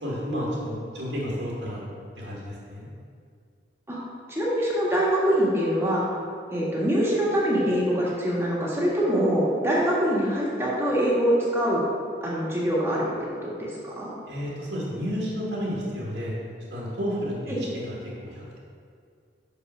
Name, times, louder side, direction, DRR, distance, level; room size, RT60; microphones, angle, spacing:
voice 1, 0.0-1.8 2.2-2.9 14.3-16.3 16.7-18.6, equal, 80° right, -5 dB, 1.7 m, -31 dB
voice 2, 4.3-6.0 6.5-11.8 12.2-14.1 17.5-17.6, equal, 15° right, -6 dB, 1.5 m, -24 dB
6.3 x 5.5 x 5.5 m, 2.2 s
head